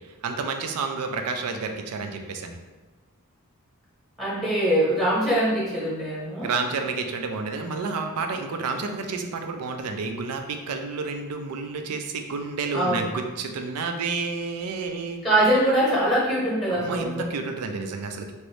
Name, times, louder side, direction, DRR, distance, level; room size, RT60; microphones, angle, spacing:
voice 1, 0.2-2.6 6.4-15.2 16.7-18.3, right 4 dB, 90° right, 5 dB, 0.4 m, -30 dB
voice 2, 4.2-6.5 12.7-13.1 15.2-17.3, right 1 dB, ahead, -7 dB, 0.9 m, -23 dB
3.0 x 2.6 x 3.1 m, 1.3 s
head